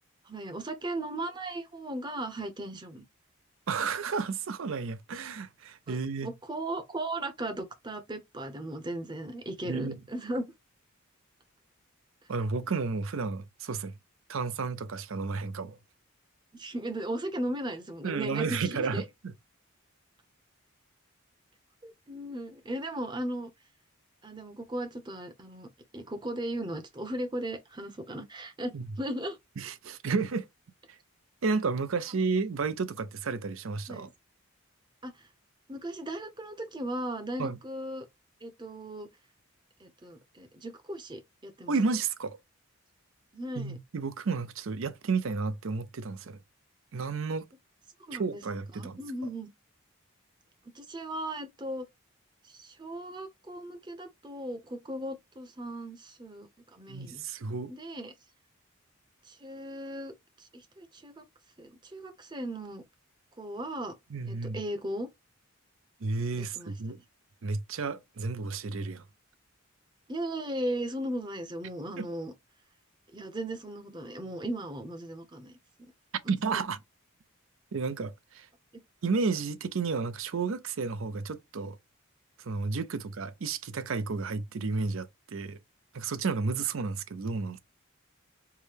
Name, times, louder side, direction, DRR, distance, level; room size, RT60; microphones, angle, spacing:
voice 1, 0.3-3.0 5.9-10.5 16.5-19.0 21.8-23.5 24.2-29.4 33.9-34.1 35.0-35.1 35.7-38.1 38.4-39.1 39.8-41.7 43.3-43.8 48.1-48.4 48.7-49.5 50.7-51.9 52.5-57.2 57.7-58.1 59.3-60.1 60.4-61.2 61.6-62.8 63.4-63.9 64.3-65.1 66.4-67.0 70.1-72.3 73.1-75.5 76.5-76.6, right 1 dB, 20° right, 0.7 m, -37 dB
voice 2, 3.7-6.3 9.6-10.0 12.3-13.9 14.3-15.8 18.0-19.3 28.7-28.8 29.6-30.5 30.9-31.0 31.4-34.1 37.4-37.6 41.7-42.4 43.6-46.4 46.9-47.5 48.1-49.0 56.9-57.7 64.1-64.6 66.0-67.0 67.4-69.0 72.0-72.1 76.3-76.8 77.7-78.5 79.0-81.8 82.4-85.6 85.9-87.6, right 4 dB, 65° right, 0.5 m, -32 dB
4.6 x 2.1 x 3.4 m
head